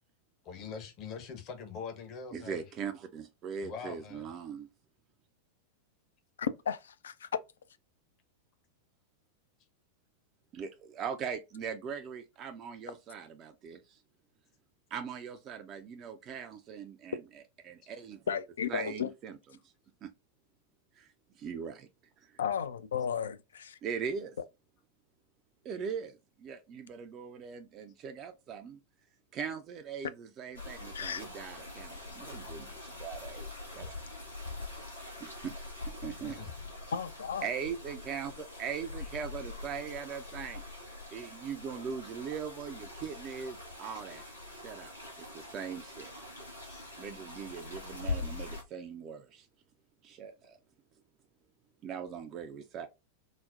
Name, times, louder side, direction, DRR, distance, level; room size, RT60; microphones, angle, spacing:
voice 1, 0.4-2.6 3.6-4.3 32.6-32.7 36.2-36.5 36.8-36.9 39.0-39.1 46.7-46.9, left 6 dB, 35° left, 0.8 m, -43 dB
voice 2, 2.3-4.7 10.5-14.0 14.9-17.2 17.6-18.2 18.7-19.4 20.0-20.1 21.0-21.1 21.4-21.9 22.2-22.3 23.8-24.4 25.6-28.8 29.3-34.0 35.2-35.5 36.0-36.4 37.4-40.6 41.1-44.2 44.5-46.1 47.0-49.5 50.0-50.6 51.8-52.9, right 7 dB, 35° right, 0.4 m, -40 dB
voice 3, 6.4-7.3 18.3-19.1 22.4-23.8 30.9-31.2 36.9-37.5, left 7 dB, 65° left, 0.3 m, -34 dB
sound 1, 30.5-48.6, left 3 dB, 85° left, 1.2 m, -43 dB
4.0 x 2.0 x 2.3 m
figure-of-eight pair, 90°, 0 cm